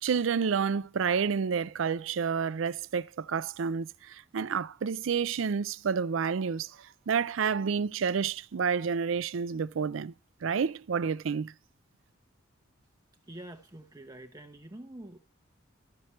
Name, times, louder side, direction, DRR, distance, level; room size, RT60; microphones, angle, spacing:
voice 1, 0.0-6.7 7.1-10.1 10.4-11.5, right 6 dB, 80° right, 0.4 m, -29 dB
voice 2, 13.2-15.2, right 1 dB, 20° right, 0.7 m, -46 dB
13.5 x 5.9 x 3.1 m
head